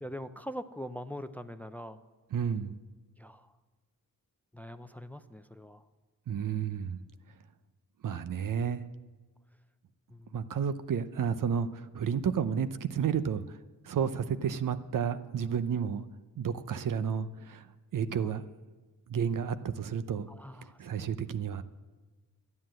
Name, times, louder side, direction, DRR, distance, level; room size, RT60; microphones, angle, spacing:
voice 1, 0.0-2.0 3.2-3.5 4.5-5.8 10.1-10.4 18.2-18.3 20.4-20.8, equal, 5° left, 10 dB, 0.5 m, -42 dB
voice 2, 2.3-2.8 6.3-7.0 8.0-8.8 10.3-13.6 13.8-16.0 16.4-17.7 17.9-18.4 19.1-20.3 20.8-21.6, right 7 dB, 70° right, 12 dB, 0.8 m, -31 dB
13.0 x 9.5 x 7.6 m, 1.3 s
wide cardioid pair, 115°, 33 cm